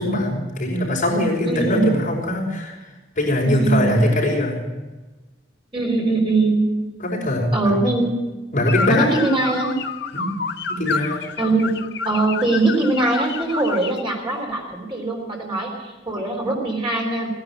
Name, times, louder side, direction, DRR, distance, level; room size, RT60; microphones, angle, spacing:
voice 1, 0.0-2.8 3.1-4.6 7.0-7.8 8.5-9.1 10.1-10.3 10.7-11.3, left 1 dB, 45° left, -3 dB, 5.1 m, -21 dB
voice 2, 1.4-2.0 3.4-3.9 5.7-6.6 7.5-8.1 8.9-9.8 11.4-11.7 12.0-17.3, right 2 dB, 25° right, -1 dB, 3.6 m, -21 dB
sound 1, 8.7-14.0, left 5 dB, 60° left, 0.7 m, -29 dB
17.0 x 10.5 x 7.5 m, 1.2 s
head